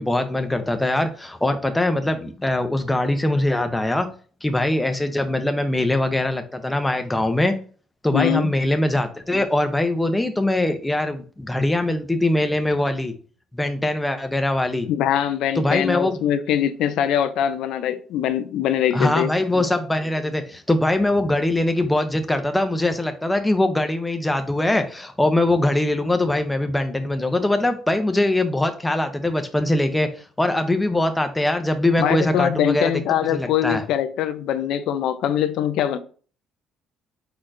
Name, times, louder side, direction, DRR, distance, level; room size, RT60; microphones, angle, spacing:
voice 1, 0.0-4.1 4.4-7.5 8.0-13.1 13.5-14.9 15.6-16.2 18.9-33.0 33.3-33.8, left 1 dB, 10° left, 0.6 m, -22 dB
voice 2, 8.1-8.5 14.9-19.3 32.0-36.0, left 10 dB, 80° left, 0.4 m, -22 dB
4.5 x 4.3 x 2.5 m
cardioid pair, 120°, 0 cm